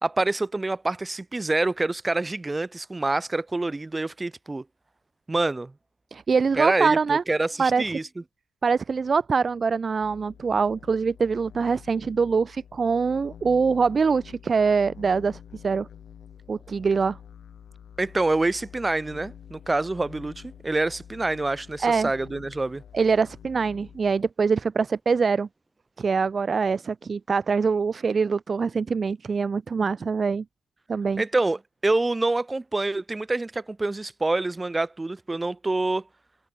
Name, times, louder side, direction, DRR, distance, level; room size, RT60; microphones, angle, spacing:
voice 1, 0.0-4.6 5.3-5.7 6.5-8.1 18.0-22.8 31.2-36.0, right 2 dB, 20° right, 2.6 m, -26 dB
voice 2, 6.1-7.2 7.6-7.8 8.6-15.9 16.5-17.2 21.8-22.1 22.9-25.5 26.0-30.4 30.9-31.2, right 5 dB, 35° right, 0.4 m, -24 dB
sound 1, 10.0-24.1, left 8 dB, 60° left, 3.7 m, -47 dB
cardioid pair, 90°, 0 cm